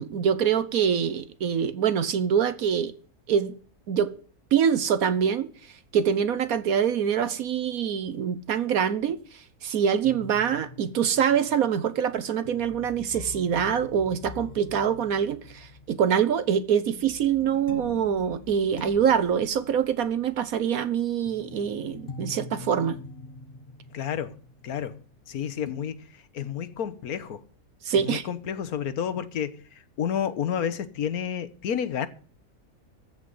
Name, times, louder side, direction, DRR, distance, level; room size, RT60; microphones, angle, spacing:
voice 1, 0.0-2.9 3.3-3.5 3.9-4.1 4.5-5.5 5.9-9.2 9.6-23.0 27.8-28.3, right 8 dB, 70° right, 1.3 m, -25 dB
sound 1, 10.0-25.3 25.7-25.8, left 3 dB, 40° left, 1.1 m, -44 dB
voice 2, 23.9-24.4 24.6-25.0 25.3-26.1 26.3-27.4 28.0-32.1, left 8 dB, 70° left, 1.5 m, -30 dB
15.0 x 5.2 x 9.5 m
omnidirectional pair, 1.6 m